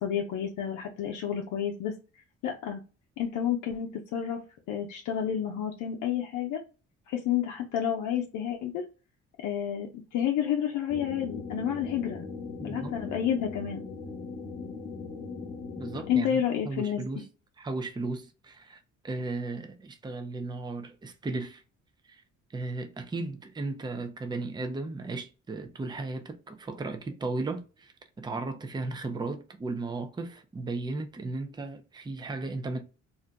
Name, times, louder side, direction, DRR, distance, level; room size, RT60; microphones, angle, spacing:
voice 1, 0.0-1.9 2.4-2.8 3.2-4.4 4.7-6.6 7.1-8.8 9.4-12.2 12.6-13.8 16.1-17.0, left 9 dB, 80° left, 0.6 m, -30 dB
sound 1, 10.9-16.2, left 4 dB, 45° left, 0.9 m, -39 dB
voice 2, 12.6-12.9 15.8-17.2 17.6-21.6 22.1-22.2 22.5-27.9 28.2-32.8, right 3 dB, 15° right, 0.5 m, -35 dB
2.5 x 2.1 x 3.8 m
cardioid pair, 90°, 30 cm